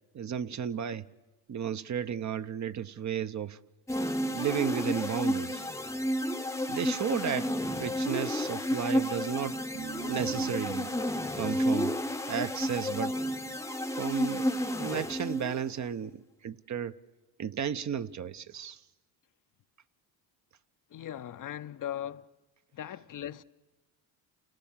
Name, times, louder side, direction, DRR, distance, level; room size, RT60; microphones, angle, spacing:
voice 1, 0.1-1.1 1.5-3.6 4.3-5.6 6.6-7.5 7.8-9.6 10.1-10.9 11.4-11.9 12.3-13.2 13.9-14.5 14.8-16.9 17.4-18.8, right 8 dB, 35° right, 0.7 m, -33 dB
sound 1, 3.9-15.7, equal, 5° left, 0.8 m, -31 dB
sound 2, 9.7-12.9, right 8 dB, 75° right, 1.7 m, -44 dB
voice 2, 20.9-22.3 22.7-23.4, left 11 dB, 40° left, 0.7 m, -38 dB
28.5 x 18.5 x 7.4 m
supercardioid pair, 70°, 48 cm